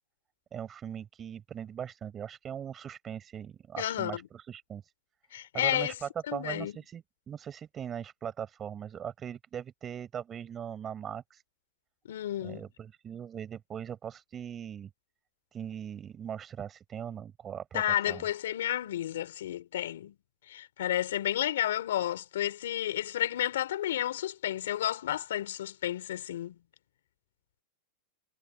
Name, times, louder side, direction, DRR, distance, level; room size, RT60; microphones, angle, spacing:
voice 1, 0.5-4.9 5.5-11.4 12.4-14.9 15.5-18.3, right 8 dB, 20° right, 7.1 m, -40 dB
voice 2, 3.8-4.3 5.3-5.9 6.3-6.8 12.1-12.7 17.7-20.2 20.5-26.6, left 12 dB, 80° left, 5.5 m, -31 dB
supercardioid pair, 160°, 0 cm